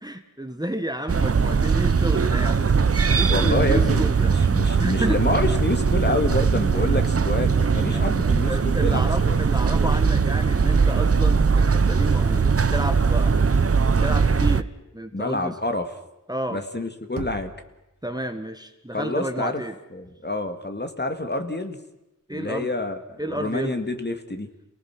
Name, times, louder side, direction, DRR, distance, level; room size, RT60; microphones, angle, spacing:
voice 1, 0.0-2.7 3.2-4.4 4.8-5.2 7.9-8.1 8.5-13.4 13.9-14.7 14.9-15.5 16.3-16.6 18.0-19.7 22.3-22.7 23.2-23.8, right 1 dB, 10° right, 8 dB, 1.5 m, -30 dB
sound 1, 1.1-14.6, right 5 dB, 45° right, 0.7 m, -20 dB
voice 2, 3.3-9.4 15.1-15.9 16.5-17.5 18.9-19.6 19.9-21.8 22.3-24.5, left 2 dB, 30° left, 6 dB, 2.2 m, -28 dB
Knock, 17.2-18.1, right 5 dB, 80° right, 1.4 m, -38 dB
29.0 x 19.0 x 6.0 m, 0.96 s
wide cardioid pair, 55°, 33 cm